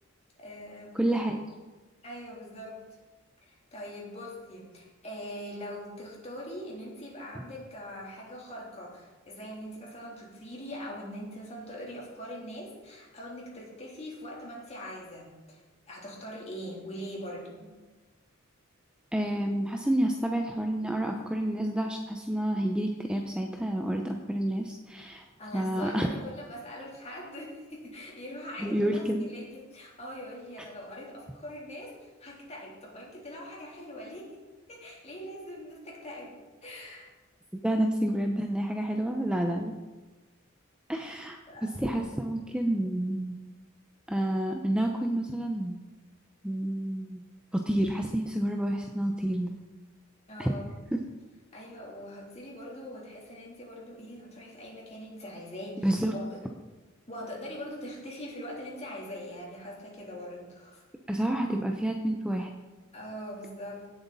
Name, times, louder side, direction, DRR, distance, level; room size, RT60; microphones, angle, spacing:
voice 1, 0.4-1.1 2.0-2.8 3.4-15.6 15.9-17.7 25.4-34.4 34.7-36.3 36.6-37.1 41.5-41.7 50.3-50.7 51.5-56.4 57.1-60.8 62.9-63.9, equal, 30° left, -3 dB, 3.3 m, -42 dB
voice 2, 0.9-1.5 19.1-25.2 25.5-26.1 28.6-29.3 37.6-39.7 40.9-41.4 41.8-43.4 44.1-45.8 46.4-47.2 47.5-49.5 50.4-50.5 50.9-51.0 55.8-56.1 61.1-62.5, right 1 dB, 5° right, 3 dB, 0.6 m, -29 dB
16.5 x 7.9 x 4.1 m, 1.2 s
head